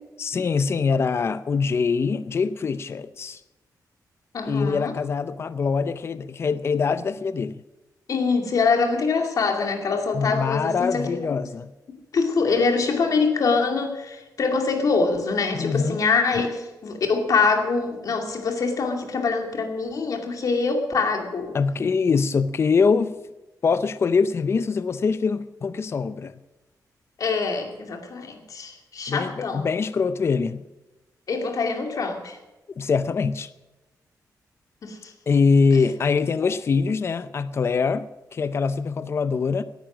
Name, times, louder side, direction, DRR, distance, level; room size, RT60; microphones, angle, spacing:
voice 1, 0.2-3.4 4.5-7.6 10.1-11.7 15.5-16.0 21.5-23.1 23.6-26.3 29.1-30.6 32.8-33.5 35.3-39.6, left 5 dB, 40° left, 0.5 m, -23 dB
voice 2, 4.3-4.9 8.1-11.4 12.1-21.6 27.2-29.7 31.3-32.4 34.8-35.1, left 4 dB, 55° left, 2.4 m, -24 dB
18.0 x 10.5 x 6.2 m
wide cardioid pair, 150°, 7 cm